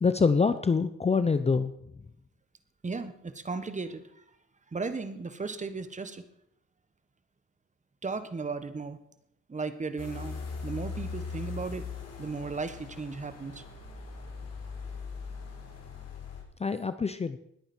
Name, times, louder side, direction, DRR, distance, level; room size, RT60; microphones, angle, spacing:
voice 1, 0.0-1.7 16.6-17.4, left 5 dB, 20° left, 12 dB, 0.6 m, -25 dB
voice 2, 2.8-4.2 4.7-6.2 8.0-9.0 9.5-11.9 12.2-13.6, right 4 dB, 25° right, 11 dB, 1.3 m, -36 dB
sound 1, 10.0-16.4, left 5 dB, 55° left, 4.3 m, -40 dB
20.0 x 8.8 x 4.5 m, 0.76 s
cardioid pair, 90°, 30 cm